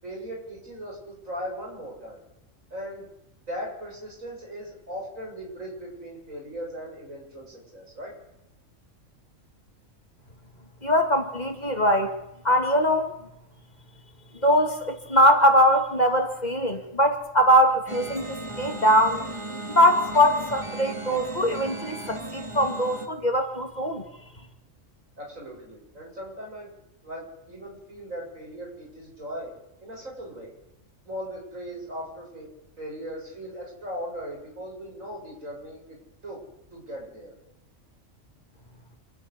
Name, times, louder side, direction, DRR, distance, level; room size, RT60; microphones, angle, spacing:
voice 1, 0.0-2.2 2.7-3.1 3.5-8.1 25.2-26.7 27.0-29.5 29.8-30.5 31.0-32.5 32.8-36.0 36.2-36.4 36.7-37.3, equal, 80° right, -1 dB, 8.3 m, -38 dB
voice 2, 10.8-12.1 12.4-13.1 14.4-19.2 19.7-24.0, equal, 30° left, 5 dB, 2.5 m, -21 dB
sound 1, 17.9-23.1, right 2 dB, 25° right, 2.1 m, -36 dB
27.0 x 9.8 x 9.7 m, 0.85 s
omnidirectional pair, 1.4 m